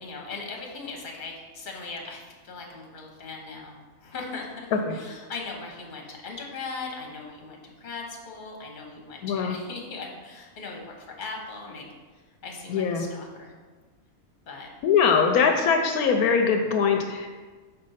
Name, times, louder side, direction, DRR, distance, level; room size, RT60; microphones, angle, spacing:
voice 1, 0.0-11.9 12.1-13.5 14.5-14.7 15.6-15.7 16.9-17.0, left 4 dB, 35° left, 0 dB, 1.1 m, -39 dB
voice 2, 9.2-9.6 12.7-13.1 14.8-17.3, left 6 dB, 80° left, 4 dB, 1.0 m, -22 dB
5.2 x 4.2 x 5.6 m, 1.4 s
omnidirectional pair, 1.6 m